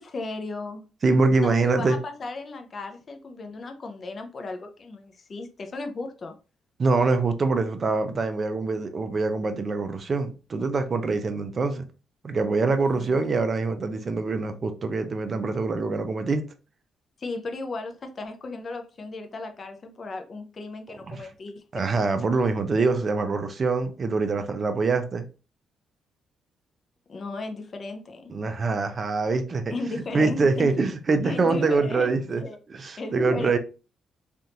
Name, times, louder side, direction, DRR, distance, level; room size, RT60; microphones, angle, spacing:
voice 1, 0.0-0.9 1.4-6.3 12.9-13.2 17.2-21.9 27.1-28.3 29.7-30.8 31.2-32.6 33.0-33.6, left 3 dB, 40° left, 0.5 m, -35 dB
voice 2, 1.0-2.0 6.8-11.8 12.2-16.5 21.1-21.2 21.7-25.2 28.3-29.7 30.1-32.4 32.7-33.6, right 3 dB, 40° right, 0.6 m, -24 dB
3.4 x 2.5 x 2.8 m
cardioid pair, 90°, 0 cm